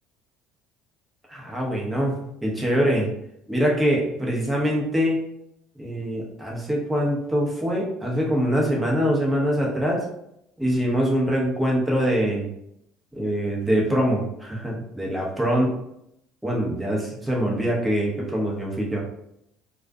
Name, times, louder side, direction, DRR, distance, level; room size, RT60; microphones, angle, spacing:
voice 1, 1.3-2.1 2.4-3.1 3.5-5.2 5.8-10.0 10.6-12.5 13.1-15.7 16.4-19.0, equal, 5° right, -3 dB, 0.8 m, -24 dB
2.4 x 2.4 x 2.2 m, 0.77 s
supercardioid pair, 80°, 0 cm